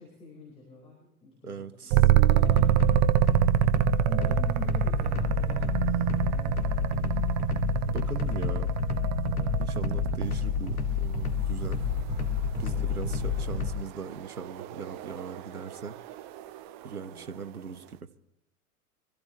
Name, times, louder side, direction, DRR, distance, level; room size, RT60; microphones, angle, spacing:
voice 1, 0.0-3.6 4.1-7.3 12.7-12.9 17.0-17.3, left 3 dB, 15° left, -3 dB, 4.9 m, -47 dB
voice 2, 1.4-2.0 7.9-8.7 9.6-11.8 12.6-16.0 16.8-18.0, right 6 dB, 80° right, 13 dB, 1.1 m, -39 dB
sound 1, 1.9-10.5 12.7-17.2, right 15 dB, 35° right, 0.7 m, -26 dB
sound 2, 2.4-13.7, left 5 dB, 80° left, 2.2 m, -29 dB
24.5 x 15.0 x 3.3 m, 0.81 s
figure-of-eight pair, 95°, 44 cm